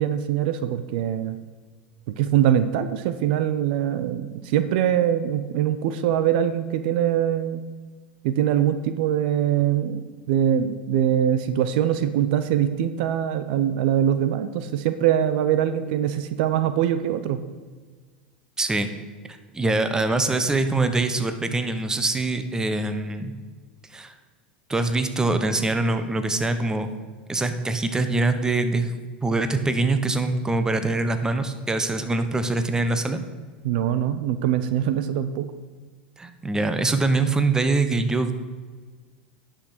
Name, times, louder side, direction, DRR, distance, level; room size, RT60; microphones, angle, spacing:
voice 1, 0.0-1.4 2.1-7.6 8.2-17.4 33.6-35.5, right 10 dB, 60° right, 11 dB, 0.6 m, -23 dB
voice 2, 18.6-18.9 19.3-23.3 23.9-24.1 24.7-26.9 27.3-28.9 29.2-33.2 36.2-38.3, right 3 dB, 10° right, 9 dB, 1.0 m, -24 dB
9.8 x 6.4 x 6.1 m, 1.5 s
hypercardioid pair, 90°, 5 cm